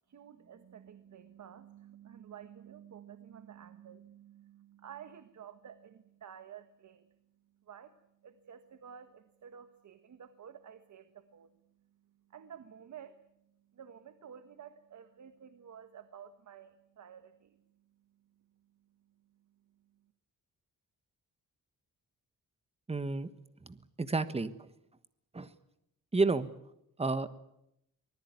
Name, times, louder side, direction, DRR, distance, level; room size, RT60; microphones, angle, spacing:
voice 1, 0.1-7.1 7.7-7.9 8.2-11.5 12.3-13.2 13.7-17.6, right 8 dB, 55° right, 10 dB, 1.4 m, -51 dB
voice 2, 22.9-23.3 23.6-24.5 25.3-25.5 26.1-26.5 27.0-27.3, right 3 dB, 15° right, 12 dB, 1.3 m, -30 dB
24.5 x 19.5 x 9.5 m, 0.82 s
wide cardioid pair, 155°, 34 cm